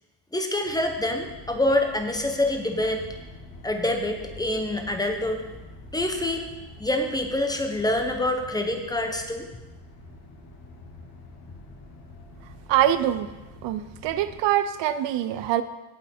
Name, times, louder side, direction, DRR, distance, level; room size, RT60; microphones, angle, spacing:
voice 1, 0.3-3.0 3.6-5.4 5.9-6.5 6.8-9.5, left 1 dB, 10° left, 4 dB, 0.8 m, -26 dB
sound 1, 0.6-14.4, left 2 dB, 80° left, 3.0 m, -46 dB
voice 2, 12.7-13.3 13.6-15.6, right 12 dB, 75° right, 12 dB, 0.7 m, -24 dB
16.5 x 5.9 x 4.3 m, 1.1 s
cardioid pair, 170°, 44 cm